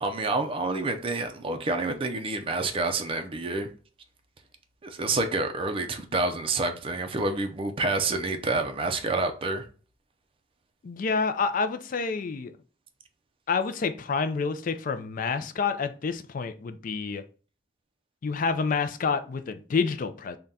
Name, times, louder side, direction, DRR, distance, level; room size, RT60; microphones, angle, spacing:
voice 1, 0.0-3.7 4.8-9.6, right 3 dB, 30° right, 0.4 m, -28 dB
voice 2, 10.8-12.5 13.5-17.2 18.2-20.4, left 5 dB, 45° left, 0.4 m, -28 dB
3.6 x 2.2 x 4.0 m
head